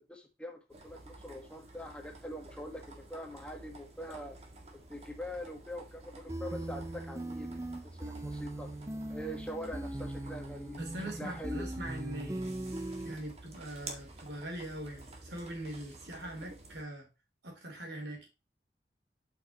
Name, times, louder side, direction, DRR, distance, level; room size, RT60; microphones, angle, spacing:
voice 1, 0.0-4.4 4.7-7.6 8.0-8.7 9.1-10.8 11.2-11.7, equal, 5° left, 1.4 m, -43 dB
sound 1, 0.7-16.8, right 2 dB, 35° right, 1.9 m, -51 dB
sound 2, 6.3-13.1, right 1 dB, 15° right, 0.5 m, -40 dB
voice 2, 10.8-12.5 13.0-17.1 17.4-18.3, right 1 dB, 80° right, 3.2 m, -42 dB
8.3 x 5.8 x 2.9 m
head